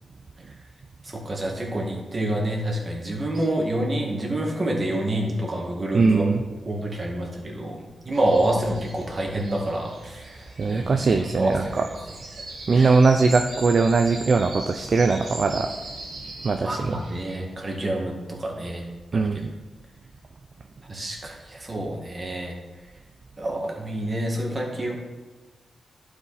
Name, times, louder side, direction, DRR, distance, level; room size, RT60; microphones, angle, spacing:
voice 1, 1.2-6.2 6.6-10.4 10.7-11.8 12.7-12.9 16.6-18.8 19.1-19.3 20.9-22.5 23.4-24.9, right 1 dB, 30° right, 0 dB, 1.8 m, -27 dB
voice 2, 5.9-6.4 10.6-11.9 12.7-15.7 16.4-17.0 19.1-19.5, right 4 dB, 50° right, 5 dB, 0.5 m, -20 dB
sound 1, 8.1-17.4, right 2 dB, 75° right, 1.8 m, -40 dB
11.5 x 4.9 x 4.2 m, 1.3 s
cardioid pair, 90°, 0 cm